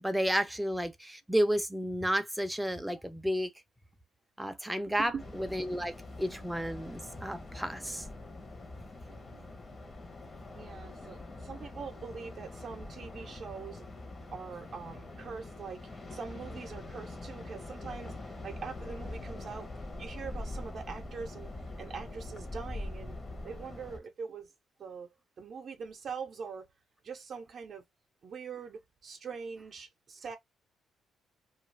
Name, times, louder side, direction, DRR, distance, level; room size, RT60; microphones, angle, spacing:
voice 1, 0.0-3.5 4.4-5.1 5.4-8.1, equal, 5° right, 0.5 m, -31 dB
voice 2, 4.9-5.3 9.1-9.5 10.5-13.9 14.3-19.7 20.0-21.5 21.8-23.2 23.4-24.5 24.8-26.7 27.0-27.8 28.2-30.4, right 5 dB, 55° right, 0.6 m, -43 dB
sound 1, 5.2-24.0, left 2 dB, 30° left, 0.8 m, -44 dB
2.4 x 2.3 x 3.2 m
cardioid pair, 90°, 0 cm